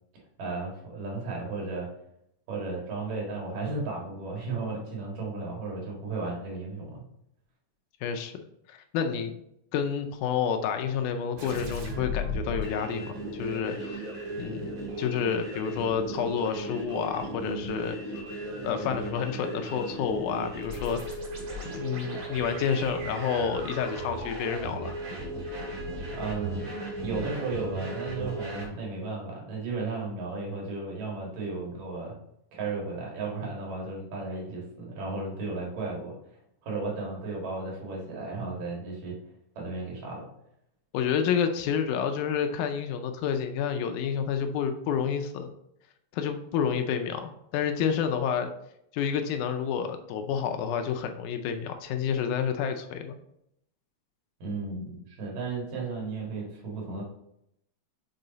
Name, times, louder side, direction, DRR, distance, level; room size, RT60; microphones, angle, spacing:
voice 1, 0.4-1.9 2.5-7.0 26.1-26.7 27.0-32.1 32.5-36.2 36.6-39.2 39.6-40.3 54.4-57.0, right 3 dB, 85° right, -2 dB, 3.4 m, -34 dB
voice 2, 8.0-8.3 8.7-9.4 9.7-14.0 14.4-14.7 15.0-18.0 18.6-21.2 21.7-25.0 40.9-45.5 46.1-48.5 48.9-53.2, left 7 dB, 80° left, 6 dB, 2.0 m, -29 dB
sound 1, 11.4-28.7, right 1 dB, 60° right, 2.9 m, -36 dB
6.6 x 4.0 x 4.0 m, 0.77 s
omnidirectional pair, 3.7 m